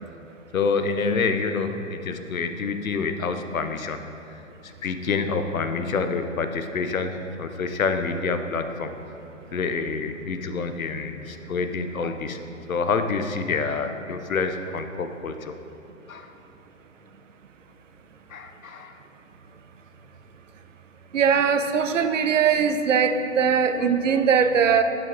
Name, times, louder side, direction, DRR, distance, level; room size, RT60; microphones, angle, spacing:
voice 1, 0.5-4.0 4.3-8.9 9.5-12.4 12.7-15.6 16.1-16.3 18.3-19.0, left 4 dB, 80° left, 8 dB, 0.7 m, -27 dB
voice 2, 21.1-24.8, right 6 dB, 65° right, 8 dB, 0.6 m, -20 dB
11.0 x 5.8 x 2.6 m, 2.8 s
figure-of-eight pair, 135°, 40 cm